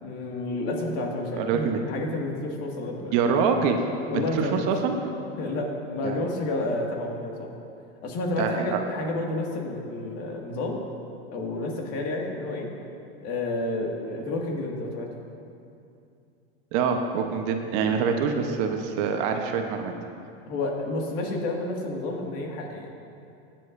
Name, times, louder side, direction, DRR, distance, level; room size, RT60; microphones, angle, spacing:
voice 1, 0.0-3.1 4.1-4.6 5.4-7.5 8.0-10.8 11.3-12.7 13.2-15.1 20.5-22.9, left 2 dB, 50° left, 0 dB, 2.0 m, -30 dB
voice 2, 1.3-1.8 3.1-3.8 4.1-5.0 6.0-6.2 8.4-8.8 16.7-19.9, right 6 dB, 55° right, 4 dB, 1.0 m, -25 dB
21.5 x 7.5 x 2.6 m, 2.6 s
hypercardioid pair, 110°, 32 cm